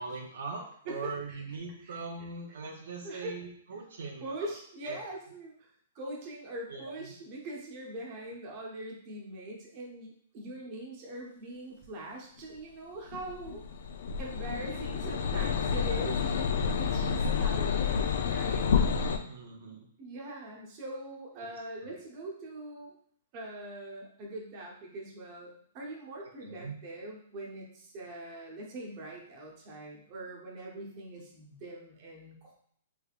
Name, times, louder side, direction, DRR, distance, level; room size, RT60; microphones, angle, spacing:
voice 1, 0.0-4.5 4.8-5.0 6.7-7.1 10.6-10.8 14.1-14.6 14.8-14.9 17.2-17.4 19.3-19.9 21.4-21.5 21.8-21.9 26.2-26.8, right 4 dB, 75° right, 1 dB, 0.7 m, -42 dB
voice 2, 0.9-1.4 1.8-2.0 3.0-3.4 4.2-5.7 5.9-13.6 14.2-18.7 20.0-22.9 23.3-32.5, right 2 dB, 30° right, -2 dB, 0.9 m, -42 dB
sound 1, 13.1-19.2, left 6 dB, 65° left, 0.4 m, -29 dB
3.4 x 3.4 x 2.4 m, 0.65 s
hypercardioid pair, 160°, 0 cm